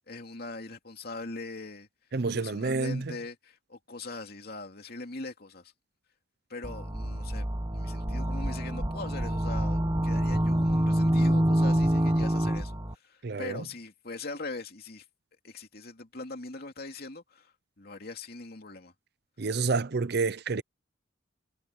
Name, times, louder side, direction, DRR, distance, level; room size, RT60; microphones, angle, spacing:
voice 1, 0.1-1.9 2.3-5.7 6.5-15.0 15.4-17.5 17.8-18.9, left 3 dB, 50° left, 2.6 m, -41 dB
voice 2, 2.1-3.2 13.2-13.6 19.4-20.6, right 4 dB, 55° right, 0.6 m, -29 dB
sound 1, 6.6-12.9, equal, 20° right, 1.3 m, -26 dB
head